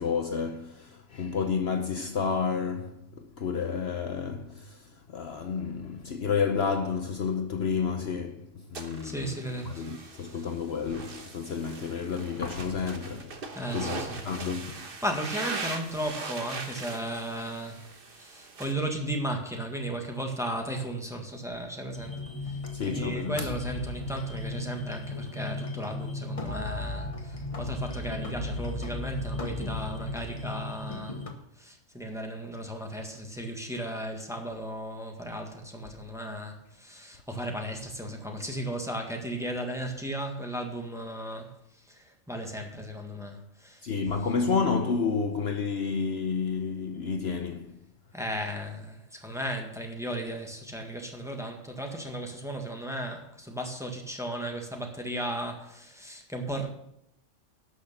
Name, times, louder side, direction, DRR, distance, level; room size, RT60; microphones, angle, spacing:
voice 1, 0.0-13.4 13.7-14.8 22.7-23.5 43.8-47.8, left 5 dB, 60° left, 1.0 m, -30 dB
sound 1, 8.7-18.7, right 3 dB, 45° right, 1.3 m, -40 dB
voice 2, 9.0-10.4 13.5-14.2 14.8-22.2 22.4-31.3 31.6-43.8 48.1-56.7, right 1 dB, ahead, 1.7 m, -35 dB
sound 2, 21.9-31.3, left 2 dB, 30° left, 1.2 m, -35 dB
12.0 x 6.4 x 7.0 m
omnidirectional pair, 1.3 m